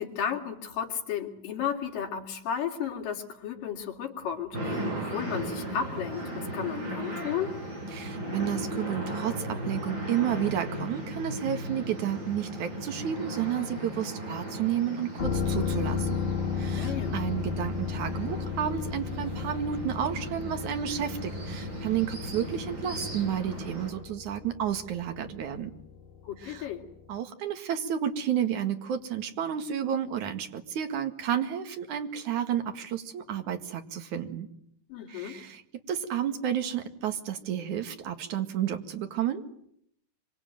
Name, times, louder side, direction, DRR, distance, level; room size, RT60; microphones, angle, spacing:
voice 1, 0.0-7.5 16.8-17.2 26.3-26.8 34.9-35.4, left 8 dB, 85° left, 2 dB, 4.4 m, -33 dB
sound 1, 4.5-23.9, right 1 dB, 35° right, 7.2 m, -37 dB
voice 2, 7.9-16.2 16.6-25.7 26.4-26.7 27.1-34.5 35.1-35.6 35.9-39.4, right 9 dB, 65° right, 7 dB, 3.3 m, -31 dB
sound 2, 15.2-26.7 27.1-27.2, left 6 dB, 30° left, 1.0 m, -34 dB
26.0 x 25.0 x 9.2 m, 0.70 s
omnidirectional pair, 3.8 m